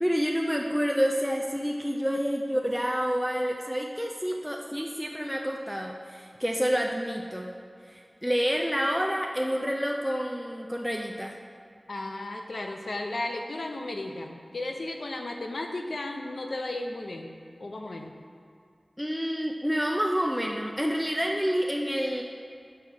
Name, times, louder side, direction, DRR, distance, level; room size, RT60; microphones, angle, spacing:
voice 1, 0.0-7.5 7.9-11.3 19.0-22.2, equal, ahead, 0 dB, 0.4 m, -28 dB
voice 2, 11.9-17.3 17.6-18.1, left 2 dB, 80° left, 4 dB, 0.6 m, -34 dB
5.6 x 4.6 x 6.2 m, 2.4 s
wide cardioid pair, 65°, 0 cm